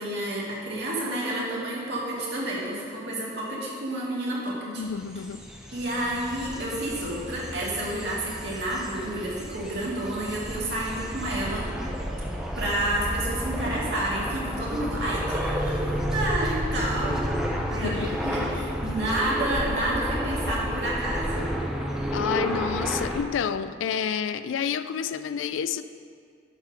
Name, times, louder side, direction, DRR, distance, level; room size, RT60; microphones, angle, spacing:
voice 1, 0.0-4.8 5.7-11.7 12.6-17.4 17.7-21.5, right 1 dB, 55° right, -6 dB, 2.0 m, -30 dB
voice 2, 4.7-5.4 17.8-18.2 22.1-25.8, left 7 dB, 75° left, 13 dB, 0.3 m, -29 dB
sound 1, 4.9-23.2, equal, 5° right, 0.5 m, -31 dB
10.5 x 3.8 x 6.0 m, 2.2 s
head